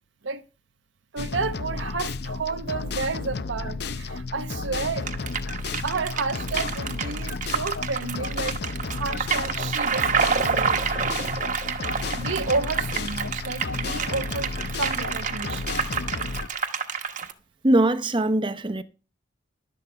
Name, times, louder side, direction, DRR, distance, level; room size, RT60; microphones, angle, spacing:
voice 1, 1.1-5.1 5.8-8.6 8.9-10.8 12.2-14.5 14.8-15.8, right 4 dB, 70° right, 0.8 m, -31 dB
sound 1, 1.2-16.5, left 3 dB, 55° left, 0.6 m, -32 dB
sound 2, 5.1-17.3, right 6 dB, 40° right, 1.1 m, -28 dB
voice 2, 17.6-18.8, right 1 dB, 25° right, 0.7 m, -21 dB
12.0 x 8.8 x 4.7 m
head